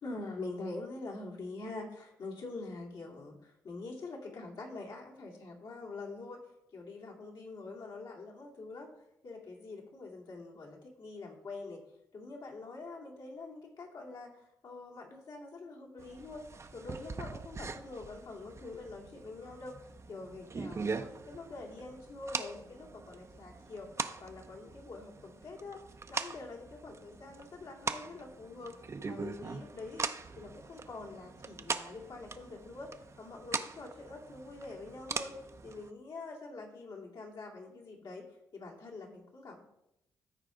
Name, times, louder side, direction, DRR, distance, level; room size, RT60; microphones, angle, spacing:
voice 1, 0.0-6.4 6.7-8.9 9.2-11.8 12.1-16.5 16.7-19.8 20.1-23.9 24.2-25.8 26.1-30.1 30.4-35.4 35.6-38.2 38.5-39.6, left 3 dB, 65° left, -1 dB, 2.4 m, -45 dB
sound 1, 16.0-35.9, right 4 dB, 40° right, 0.7 m, -42 dB
13.5 x 4.7 x 3.9 m, 0.82 s
supercardioid pair, 55°, 8 cm